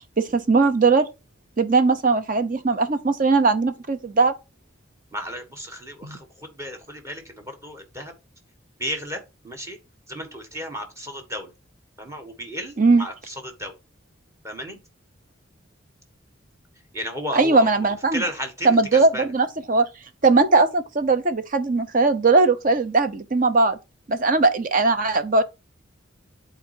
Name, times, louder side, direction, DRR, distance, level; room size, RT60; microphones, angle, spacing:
voice 1, 0.2-1.1 1.6-4.3 6.0-6.2 12.8-13.1 17.3-18.2 18.6-19.9 20.2-23.8 24.1-25.4, right 3 dB, 40° right, 0.7 m, -19 dB
voice 2, 5.1-8.1 8.8-9.8 10.1-11.5 12.0-13.7 14.4-14.8 16.9-19.3, equal, 15° right, 1.5 m, -34 dB
11.0 x 4.1 x 2.7 m
head